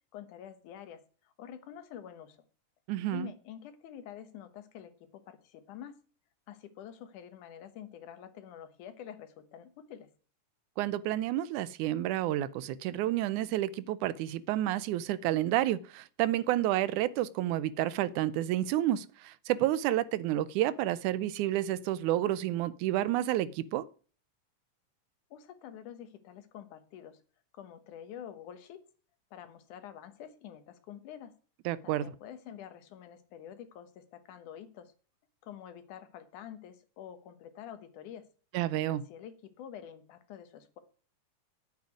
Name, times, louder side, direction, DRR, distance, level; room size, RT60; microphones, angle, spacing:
voice 1, 0.1-2.4 3.1-6.0 6.5-10.1 25.3-27.2 27.5-28.8 29.3-31.3 31.8-34.9 35.4-38.3 38.9-40.8, left 9 dB, 85° left, 2.7 m, -47 dB
voice 2, 2.9-3.3 10.8-23.9 31.7-32.1 38.5-39.0, right 13 dB, 85° right, 2.2 m, -30 dB
8.8 x 8.4 x 9.3 m
omnidirectional pair, 3.5 m